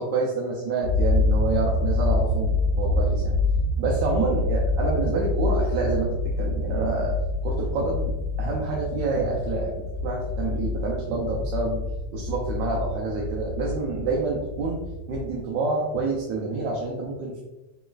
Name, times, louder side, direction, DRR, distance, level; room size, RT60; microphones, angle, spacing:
voice 1, 0.0-3.3 3.8-6.1 6.4-7.1 7.4-8.1 8.4-9.7 10.0-11.8 12.1-14.8 15.1-17.4, right 3 dB, 85° right, -3 dB, 1.4 m, -27 dB
sound 1, 0.8-15.3, left 2 dB, 60° left, 1.1 m, -26 dB
5.3 x 3.1 x 2.4 m, 1.0 s
omnidirectional pair, 1.9 m